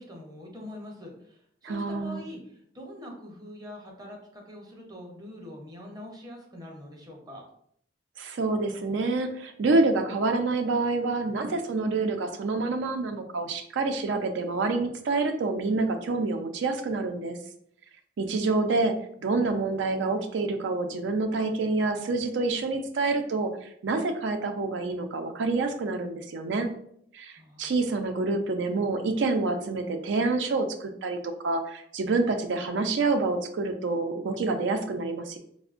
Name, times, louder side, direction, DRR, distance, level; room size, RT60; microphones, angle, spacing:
voice 1, 0.0-7.4 18.2-18.7 27.3-27.8, left 1 dB, 20° right, 1 dB, 0.6 m, -44 dB
voice 2, 1.6-2.2 8.2-17.4 18.2-18.9 19.2-26.7 27.1-35.4, right 3 dB, 80° right, 6 dB, 0.4 m, -27 dB
4.2 x 2.0 x 2.4 m, 0.69 s
head